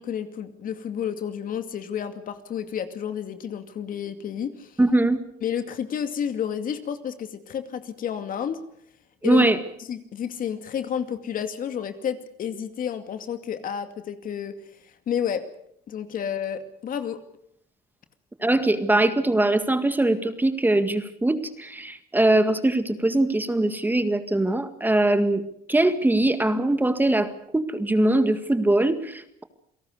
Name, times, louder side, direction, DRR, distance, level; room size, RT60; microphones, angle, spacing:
voice 1, 0.0-4.8 5.4-8.6 9.2-9.4 9.9-14.5 15.1-15.4 15.9-17.2, left 8 dB, 55° left, 8 dB, 2.4 m, -30 dB
voice 2, 4.8-5.2 9.2-9.6 18.4-29.4, right 1 dB, 10° right, 9 dB, 1.9 m, -22 dB
28.5 x 18.0 x 6.7 m, 0.72 s
cardioid pair, 110°, 17 cm